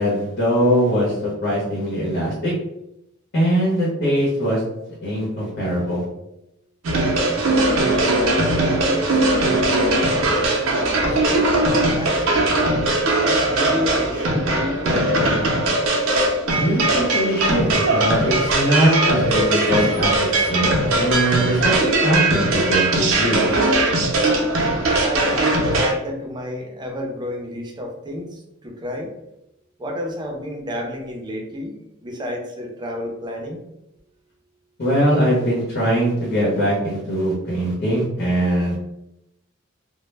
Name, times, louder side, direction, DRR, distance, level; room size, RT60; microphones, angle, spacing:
voice 1, 0.0-2.5 3.3-4.6 5.0-6.0 16.6-20.1 20.5-23.6 34.8-38.8, equal, 55° left, -6 dB, 0.8 m, -21 dB
sound 1, 6.8-25.9, right 2 dB, 85° right, 0.5 m, -20 dB
voice 2, 7.4-12.3 13.2-15.5 25.0-29.1 29.8-33.6, left 1 dB, 20° right, 1 dB, 0.4 m, -31 dB
2.0 x 2.0 x 3.1 m, 0.86 s
head